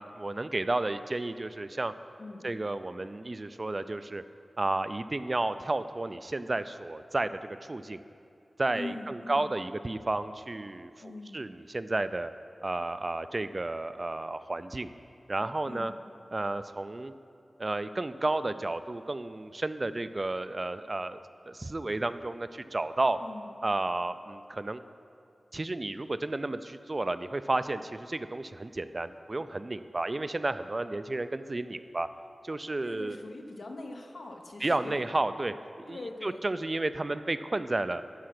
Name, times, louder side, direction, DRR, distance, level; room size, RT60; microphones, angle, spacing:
voice 1, 0.0-1.9 2.4-4.2 4.6-8.0 8.6-12.3 12.6-14.9 15.3-15.9 16.3-17.1 17.6-21.2 21.5-23.2 23.6-24.8 25.5-32.1 32.4-33.2 34.6-35.5 35.9-38.0, right 2 dB, 40° right, 12 dB, 0.3 m, -32 dB
voice 2, 8.7-9.5 11.0-11.4 15.7-16.0 23.2-23.5 32.8-35.0 35.9-36.4, left 2 dB, 80° left, 2 dB, 0.8 m, -42 dB
11.5 x 4.7 x 5.9 m, 2.7 s
wide cardioid pair, 70°, 0 cm